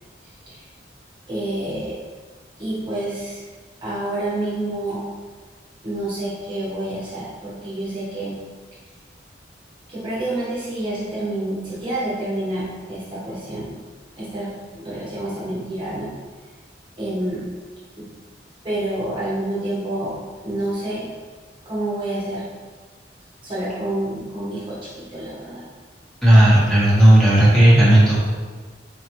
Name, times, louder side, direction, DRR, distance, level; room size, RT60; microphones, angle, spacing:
voice 1, 0.2-0.7 1.3-1.9 2.6-3.4 3.8-5.0 5.8-8.4 9.9-13.8 14.1-16.1 17.0-17.5 18.0-18.1 18.6-21.1 21.6-22.5 23.4-25.6, right 1 dB, 30° right, -7 dB, 1.0 m, -28 dB
voice 2, 26.2-28.2, right 1 dB, 5° left, -8 dB, 1.2 m, -12 dB
4.5 x 3.9 x 3.0 m, 1.5 s
head